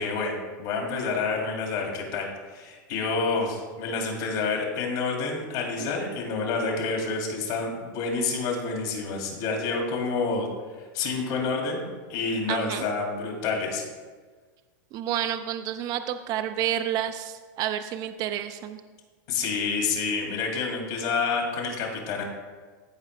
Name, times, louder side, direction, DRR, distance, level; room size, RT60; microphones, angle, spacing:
voice 1, 0.0-10.5 10.9-11.8 12.1-13.8 19.3-22.2, left 4 dB, 60° left, 0 dB, 2.4 m, -28 dB
voice 2, 12.5-12.8 14.9-18.8, right 11 dB, 35° right, 9 dB, 0.4 m, -30 dB
14.5 x 4.9 x 3.3 m, 1.4 s
supercardioid pair, 135°, 11 cm